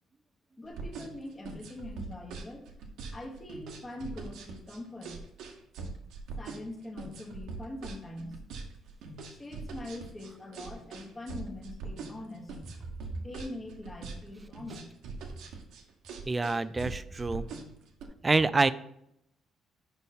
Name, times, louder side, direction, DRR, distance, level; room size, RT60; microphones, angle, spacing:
voice 1, 0.6-2.7 3.1-5.2 6.4-8.6 9.0-12.6 13.1-14.9, left 1 dB, 20° left, 0 dB, 1.3 m, -43 dB
sound 1, 0.7-18.1, right 4 dB, 80° right, 1.0 m, -42 dB
voice 2, 16.3-17.5 18.2-18.7, right 3 dB, 15° right, 15 dB, 0.3 m, -26 dB
6.2 x 5.3 x 4.1 m, 0.76 s
cardioid pair, 150°, 0 cm